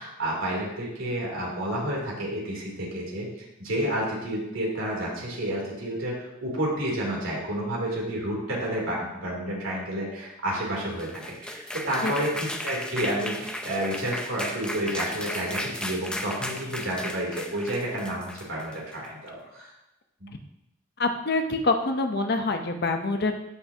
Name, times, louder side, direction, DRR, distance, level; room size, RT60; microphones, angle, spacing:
voice 1, 0.0-3.3 3.6-19.7 20.2-20.3, right 1 dB, 80° right, -3 dB, 3.1 m, -30 dB
sound 1, 10.8-19.1, left 1 dB, 5° left, 0.5 m, -35 dB
voice 2, 21.0-23.4, left 3 dB, 50° left, 6 dB, 0.7 m, -25 dB
14.5 x 5.7 x 2.8 m, 0.89 s
head